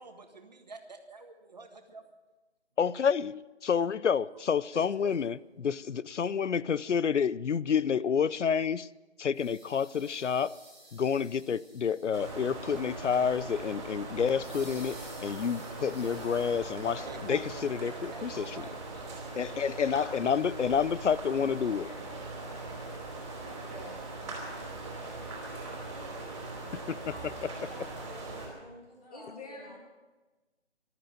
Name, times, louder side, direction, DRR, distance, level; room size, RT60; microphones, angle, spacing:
voice 1, 0.0-2.0 3.9-4.0 4.3-4.5 4.7-5.2 16.8-20.6 21.3-21.5 21.8-22.0, right 3 dB, 35° right, 1.6 m, -48 dB
voice 2, 2.8-5.4 5.6-5.7 6.0-8.9 9.2-10.6 10.9-17.0 17.3-18.6 19.4-21.9 26.7-27.0, left 7 dB, 85° left, 0.7 m, -29 dB
sound 1, 9.3-12.7 14.4-17.9, right 1 dB, 5° left, 3.8 m, -54 dB
sound 2, 12.1-28.5, right 2 dB, 10° right, 3.3 m, -41 dB
voice 3, 16.9-17.4 21.4-22.1 22.4-23.1 23.4-24.0 29.1-29.8, left 2 dB, 35° left, 2.8 m, -49 dB
voice 4, 27.1-29.8, equal, 55° left, 7.2 m, -51 dB
15.0 x 12.5 x 7.5 m
figure-of-eight pair, 175°, 35 cm